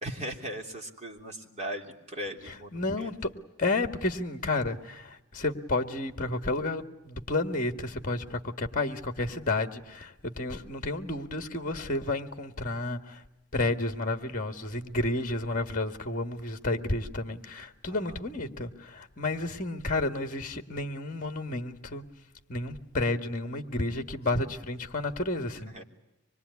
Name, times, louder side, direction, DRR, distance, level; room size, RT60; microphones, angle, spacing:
voice 1, 0.0-3.1 17.9-18.2 25.7-25.8, right 1 dB, 30° right, 3.2 m, -38 dB
voice 2, 2.5-3.3 3.6-5.1 5.3-13.0 13.5-22.0 22.5-25.8, left 2 dB, 35° left, 1.7 m, -31 dB
25.5 x 22.5 x 9.5 m
head